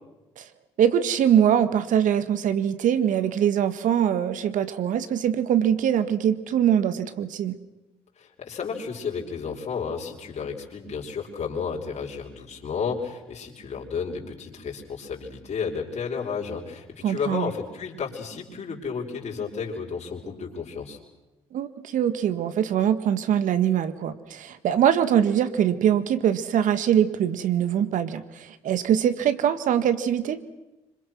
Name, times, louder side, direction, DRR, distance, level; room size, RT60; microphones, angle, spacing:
voice 1, 0.8-7.6 17.0-17.5 21.5-30.4, right 9 dB, 65° right, 11 dB, 1.8 m, -23 dB
voice 2, 8.2-21.0, left 6 dB, 50° left, -3 dB, 5.5 m, -32 dB
26.5 x 25.5 x 6.3 m, 1.0 s
hypercardioid pair, 50°, 14 cm